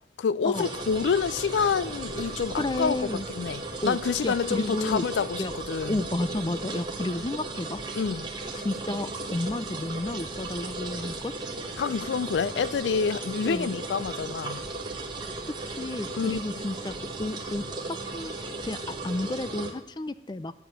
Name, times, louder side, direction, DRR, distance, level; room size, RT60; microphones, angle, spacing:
voice 1, 0.2-6.0 7.9-8.3 11.8-14.6 16.1-16.4, left 6 dB, 90° left, 0.4 m, -28 dB
sound 1, 0.5-19.7, right 2 dB, 25° right, 1.4 m, -36 dB
sound 2, 0.9-19.2, right 1 dB, 75° right, 2.2 m, -52 dB
voice 2, 2.6-3.3 3.8-4.0 4.2-5.0 5.4-5.5 5.9-7.8 8.6-11.3 13.4-13.8 15.5-20.5, left 2 dB, 25° left, 0.4 m, -32 dB
11.0 x 8.5 x 6.6 m
head